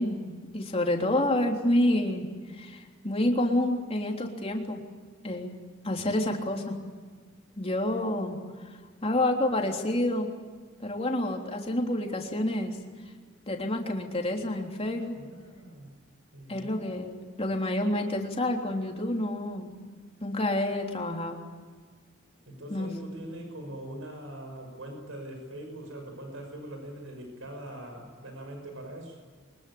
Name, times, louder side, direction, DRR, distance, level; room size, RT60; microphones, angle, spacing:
voice 1, 0.0-4.8 5.2-5.5 5.8-6.8 7.6-8.4 9.0-10.3 10.8-12.8 13.5-15.2 16.5-19.7 20.2-21.4 22.7-22.9, left 1 dB, 30° left, 1 dB, 3.4 m, -28 dB
voice 2, 15.1-16.0 16.3-16.9 22.5-29.1, right 1 dB, 80° right, 4 dB, 6.0 m, -42 dB
24.0 x 21.5 x 8.6 m, 1.5 s
head